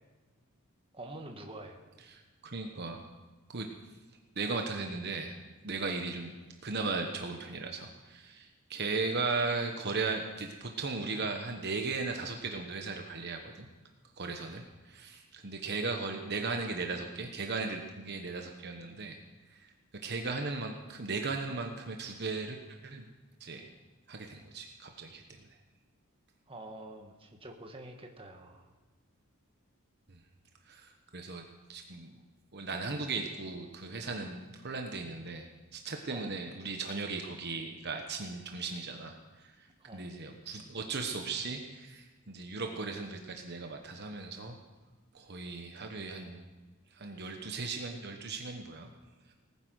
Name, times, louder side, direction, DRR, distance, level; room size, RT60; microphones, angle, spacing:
voice 1, 0.9-1.8 26.5-28.7 36.1-36.3 39.8-40.1, right 2 dB, 25° right, 3 dB, 1.6 m, -46 dB
voice 2, 2.1-3.0 3.5-3.7 4.4-5.4 5.6-6.3 6.6-13.7 14.2-19.2 19.5-19.7 20.0-23.0 23.4-23.7 24.1-25.5 30.1-30.2 30.7-31.4 31.7-32.1 32.5-35.5 35.7-44.6 45.1-46.4 46.9-48.9, right 3 dB, 50° right, 4 dB, 1.2 m, -37 dB
19.0 x 9.9 x 6.4 m, 1.3 s
head